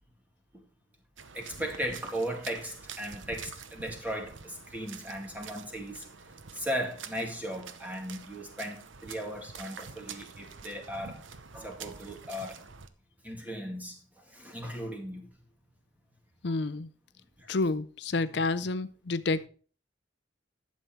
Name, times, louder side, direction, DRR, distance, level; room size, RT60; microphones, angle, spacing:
sound 1, 1.2-12.9, right 5 dB, 75° right, 0.9 m, -47 dB
voice 1, 1.3-6.1 6.5-11.2 11.5-12.6 13.2-14.0 14.3-15.3 17.4-17.5, equal, 10° right, 2.1 m, -37 dB
voice 2, 16.4-16.9 17.5-19.5, left 3 dB, 60° left, 0.5 m, -29 dB
11.5 x 7.4 x 4.5 m
head